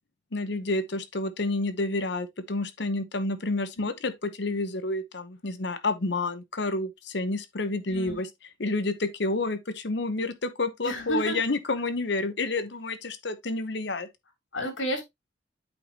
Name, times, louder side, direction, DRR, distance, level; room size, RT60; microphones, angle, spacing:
voice 1, 0.3-8.3 8.6-14.1, left 2 dB, 60° left, 0.9 m, -29 dB
voice 2, 7.9-8.2 10.8-11.4 14.5-15.0, equal, 80° left, 3.1 m, -31 dB
8.6 x 5.1 x 2.9 m
head